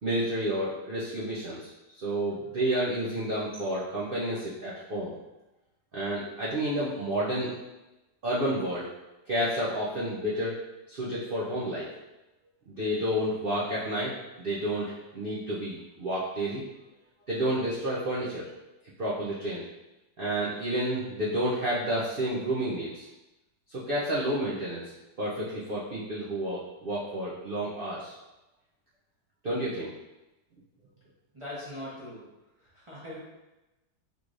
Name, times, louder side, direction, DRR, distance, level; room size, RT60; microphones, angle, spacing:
voice 1, 0.0-5.1 5.9-7.5 8.2-8.9 9.3-10.6 10.9-11.9 12.7-16.6 17.3-18.5 19.0-19.7 20.2-23.1 23.7-24.9 25.2-28.2 29.4-29.9, right 1 dB, 85° right, -7 dB, 0.5 m, -30 dB
voice 2, 31.3-32.3 32.6-33.2, left 1 dB, 25° right, -9 dB, 0.6 m, -41 dB
3.8 x 3.1 x 2.5 m, 0.99 s
omnidirectional pair, 1.9 m